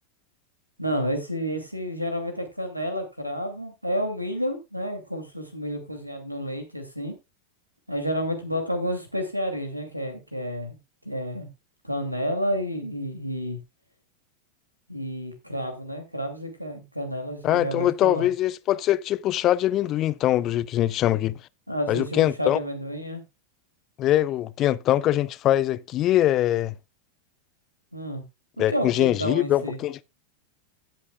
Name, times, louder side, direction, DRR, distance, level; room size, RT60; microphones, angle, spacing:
voice 1, 0.8-7.2 7.9-10.8 11.0-11.5 11.8-13.6 14.9-18.3 21.7-23.2 27.9-28.2 28.6-29.8, equal, 90° right, 2.5 m, -30 dB
voice 2, 17.4-21.4 21.9-22.6 24.0-26.7 28.6-30.0, left 13 dB, 35° left, 0.5 m, -23 dB
16.5 x 7.4 x 2.3 m
figure-of-eight pair, 90°, 0 cm